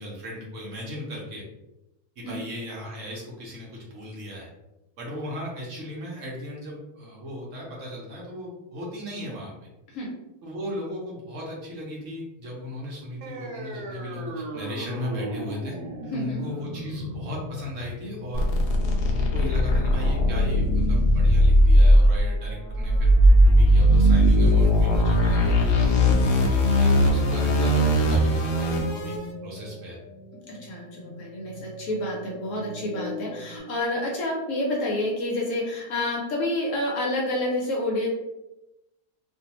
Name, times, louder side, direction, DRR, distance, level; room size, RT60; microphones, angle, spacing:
voice 1, 0.0-1.4 2.2-4.5 5.0-9.5 10.4-15.7 16.1-18.5 18.9-23.1 23.4-25.9 26.2-29.1 29.4-30.0, equal, 60° right, -3 dB, 0.9 m, -36 dB
sound 1, 13.2-20.2, right 1 dB, 90° right, 1.2 m, -38 dB
voice 2, 16.1-16.4 30.5-38.1, left 1 dB, 65° left, -2 dB, 0.8 m, -29 dB
sound 2, 18.3-29.2, equal, 85° left, 0.5 m, -19 dB
sound 3, 25.6-33.6, equal, 5° right, 0.7 m, -40 dB
2.6 x 2.3 x 2.8 m, 0.95 s
omnidirectional pair, 1.7 m